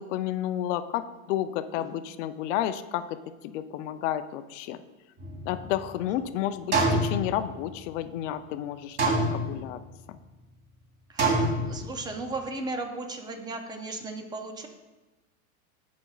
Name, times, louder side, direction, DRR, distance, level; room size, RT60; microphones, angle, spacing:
voice 1, 0.0-4.8 5.5-9.8 10.1-10.2, left 12 dB, 55° left, 10 dB, 0.6 m, -31 dB
voice 2, 1.8-2.1 11.1-14.7, right 2 dB, 10° right, 5 dB, 0.4 m, -36 dB
sound 1, 5.2-6.1 6.7-8.0 9.0-10.0 11.2-12.2, right 2 dB, 25° right, 2.8 m, -27 dB
15.5 x 5.2 x 2.4 m, 1.1 s
supercardioid pair, 140°, 44 cm